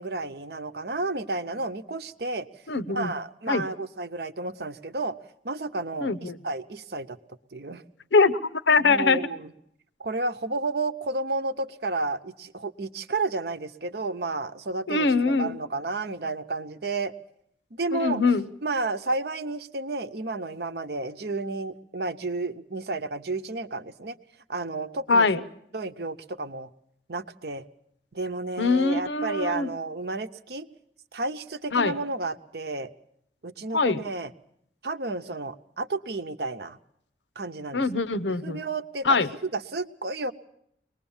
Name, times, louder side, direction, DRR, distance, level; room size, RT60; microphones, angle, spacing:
voice 1, 0.0-2.5 2.9-5.1 5.4-7.2 7.5-7.8 8.8-9.5 10.0-17.1 17.7-18.2 18.6-24.2 24.5-25.4 25.7-26.7 27.1-27.6 28.1-30.7 31.1-32.9 33.4-34.3 34.8-36.8 37.4-37.9 38.4-40.3, right 3 dB, 60° right, 10 dB, 0.8 m, -31 dB
voice 2, 2.7-3.1 3.5-3.6 6.0-6.4 8.1-9.2 14.9-15.6 17.9-18.5 25.1-25.4 28.6-29.7 31.7-32.0 33.7-34.0 37.7-38.6 39.0-39.3, left 4 dB, 85° left, 15 dB, 0.8 m, -23 dB
23.0 x 20.0 x 7.2 m, 0.71 s
head